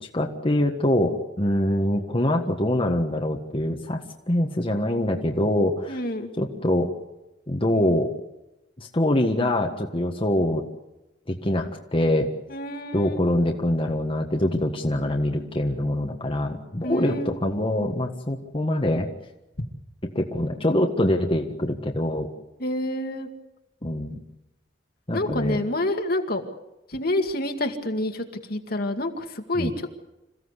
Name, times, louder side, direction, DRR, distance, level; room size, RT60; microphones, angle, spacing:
voice 1, 0.0-4.0 4.3-6.0 6.4-6.9 7.5-8.1 8.8-10.6 11.3-12.3 12.9-19.1 20.1-22.3 23.8-24.2 25.1-25.6 29.5-29.7, left 1 dB, 30° left, 2 dB, 1.6 m, -24 dB
voice 2, 5.9-6.3 12.5-13.2 16.8-17.4 22.6-23.3 25.1-26.4 26.9-30.0, left 1 dB, 55° left, 5 dB, 2.2 m, -28 dB
27.5 x 16.0 x 8.2 m, 0.95 s
head